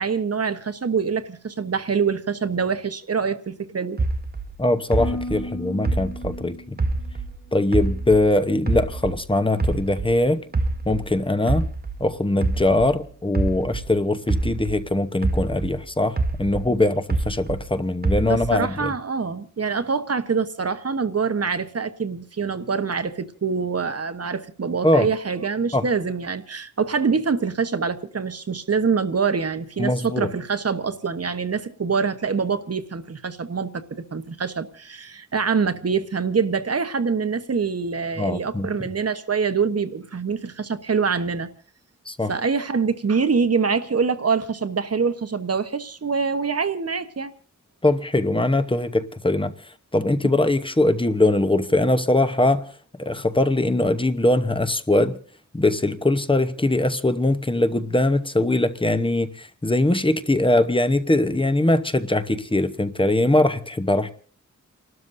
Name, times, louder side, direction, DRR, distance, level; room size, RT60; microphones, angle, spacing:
voice 1, 0.0-4.0 18.3-41.5 42.3-47.3, right 5 dB, 50° right, 1.1 m, -25 dB
sound 1, 4.0-7.4 7.7-10.2 10.5-14.9 15.2-17.7 18.0-18.7, right 3 dB, 30° right, 0.8 m, -26 dB
voice 2, 4.6-6.8 7.5-10.5 10.9-11.7 12.0-18.9 24.8-25.1 25.7-25.9 29.8-30.3 38.2-38.7 42.1-42.3 47.8-52.7 53.0-55.2 55.5-64.1, left 1 dB, 15° left, 0.9 m, -21 dB
Harp, 5.0-9.1 9.4-9.9 10.4-10.8, left 2 dB, 55° left, 3.5 m, -37 dB
29.5 x 12.5 x 2.7 m
wide cardioid pair, 105°, 31 cm